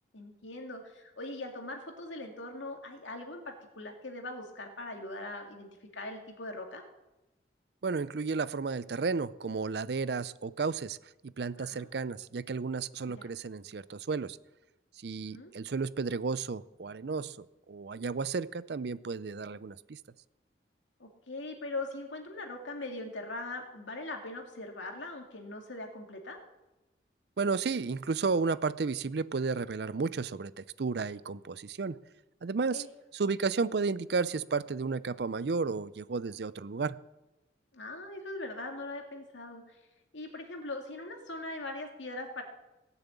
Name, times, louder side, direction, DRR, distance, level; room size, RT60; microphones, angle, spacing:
voice 1, 0.1-6.8 11.6-11.9 13.0-13.3 15.2-15.5 21.0-26.4 32.7-32.9 37.7-39.8 40.1-42.4, left 2 dB, 90° left, 3 dB, 2.4 m, -41 dB
voice 2, 7.8-11.0 11.2-14.4 15.0-20.0 27.4-32.0 32.4-32.8 33.1-37.0, right 4 dB, 60° right, 17 dB, 0.5 m, -33 dB
18.0 x 6.9 x 8.3 m, 1.0 s
head